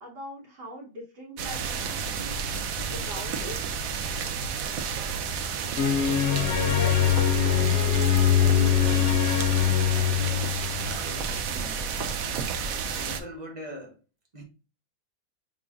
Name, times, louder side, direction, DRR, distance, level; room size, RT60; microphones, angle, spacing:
voice 1, 0.0-3.5, equal, 85° right, 1.9 m, -42 dB
sound 1, 1.4-13.2, right 6 dB, 65° right, 1.0 m, -31 dB
sound 2, 5.8-10.9, left 10 dB, 65° left, 0.7 m, -23 dB
voice 2, 6.4-9.1 9.8-11.8 13.0-14.0 14.3-14.4, left 1 dB, 30° right, 1.0 m, -41 dB
5.3 x 3.8 x 2.4 m
omnidirectional pair, 1.7 m